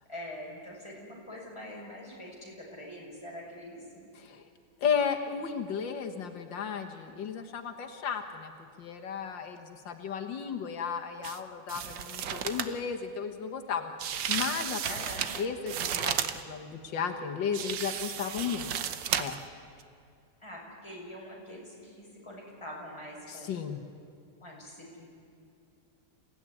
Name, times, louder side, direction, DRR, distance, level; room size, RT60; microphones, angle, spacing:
voice 1, 0.1-3.9 14.8-15.3 20.4-23.6 24.4-25.1, left 1 dB, 15° left, -3 dB, 6.2 m, -44 dB
voice 2, 4.8-8.5 8.8-13.9 14.3-14.8 15.4-16.2 16.5-18.7 19.2-19.4 23.3-23.8, left 7 dB, 85° left, 4 dB, 2.1 m, -34 dB
sound 1, 11.2-11.4 11.7-12.8 14.0-16.4 17.5-19.5 19.8-19.9, right 8 dB, 80° right, 1.7 m, -33 dB
28.0 x 16.0 x 9.9 m, 2.4 s
omnidirectional pair, 2.0 m